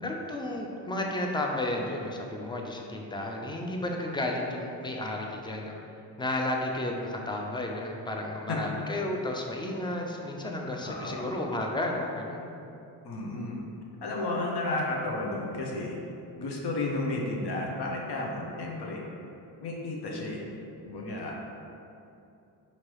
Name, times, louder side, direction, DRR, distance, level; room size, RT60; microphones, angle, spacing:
voice 1, 0.0-5.7 6.2-12.5, left 1 dB, 10° left, 0 dB, 0.4 m, -32 dB
voice 2, 10.8-11.2 13.0-13.6 14.0-16.0 16.4-19.0 19.6-20.4 20.8-21.4, left 2 dB, 60° left, -1 dB, 0.8 m, -32 dB
4.5 x 2.8 x 3.1 m, 2.7 s
cardioid pair, 65°, 44 cm